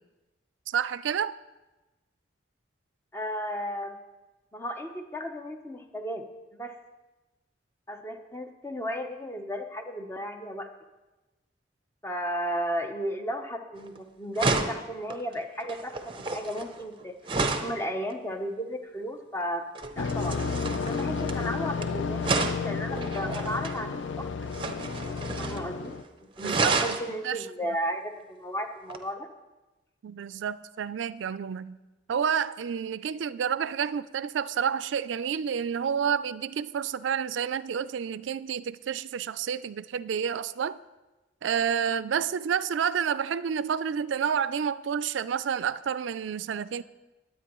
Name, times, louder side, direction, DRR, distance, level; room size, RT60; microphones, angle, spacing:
voice 1, 0.7-1.3 26.4-26.8 27.2-27.5 30.0-31.8 32.1-40.8 41.4-46.8, right 7 dB, 80° right, 0.4 m, -29 dB
voice 2, 3.1-4.0 4.5-6.3 6.5-6.8 7.9-10.7 12.0-17.2 17.5-19.7 20.0-20.4 20.8-24.5 25.4-29.3, equal, 15° left, 0.7 m, -34 dB
sound 1, 13.8-14.0 14.4-17.8 19.8-21.8 22.2-23.8 24.5-25.7 25.9-26.0 26.4-27.1 28.9-29.0, right 3 dB, 25° right, 0.6 m, -30 dB
sound 2, 20.0-26.0, left 5 dB, 85° left, 0.5 m, -32 dB
19.5 x 8.6 x 3.0 m
head